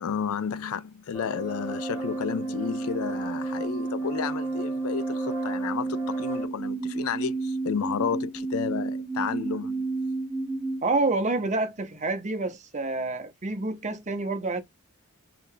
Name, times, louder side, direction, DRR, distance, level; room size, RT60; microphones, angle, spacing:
voice 1, 0.0-9.8, left 7 dB, 70° left, 0.4 m, -32 dB
sound 1, 1.1-6.5, equal, 10° right, 0.9 m, -39 dB
sound 2, 1.2-10.8, right 3 dB, 5° left, 0.6 m, -31 dB
voice 2, 10.8-14.6, right 2 dB, 30° right, 0.6 m, -28 dB
2.7 x 2.3 x 3.6 m
head